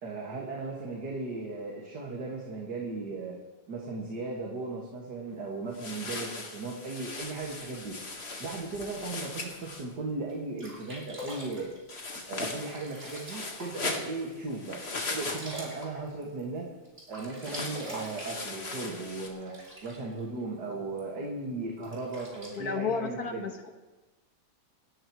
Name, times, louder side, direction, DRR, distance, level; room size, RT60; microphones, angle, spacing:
voice 1, 0.0-3.4 3.7-7.9 8.4-11.7 12.3-14.8 15.1-16.7 17.1-19.5 19.8-23.4, right 3 dB, 75° right, -2 dB, 2.6 m, -37 dB
sound 1, 5.7-9.8 11.9-15.8 17.4-19.3, left 3 dB, 40° left, 1.8 m, -39 dB
Sink (filling or washing), 7.2-9.2 9.8-9.9 10.3-10.4 10.6-14.1 14.5-16.6 16.8-20.2 21.0-21.1 21.8-22.6, equal, 35° right, 3.8 m, -45 dB
voice 2, 22.6-23.7, left 5 dB, 65° left, 5 dB, 1.6 m, -32 dB
27.0 x 13.0 x 3.1 m, 1.2 s
omnidirectional pair, 1.8 m